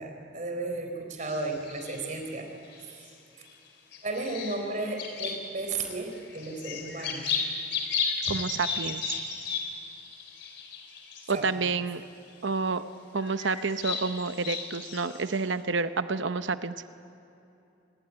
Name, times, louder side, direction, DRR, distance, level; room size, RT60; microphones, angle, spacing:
voice 1, 0.0-3.1 4.0-7.3 11.3-11.7, right 2 dB, 40° right, 3 dB, 4.2 m, -34 dB
sound 1, 1.2-2.2 2.7-3.5 3.9-5.8 6.1-11.4 12.0-12.1 13.2-15.4, left 5 dB, 60° left, 3.7 m, -34 dB
voice 2, 8.3-9.2 11.3-12.0 12.4-12.8 13.1-16.7, right 4 dB, 70° right, 10 dB, 0.8 m, -29 dB
26.0 x 21.0 x 9.7 m, 2.9 s
head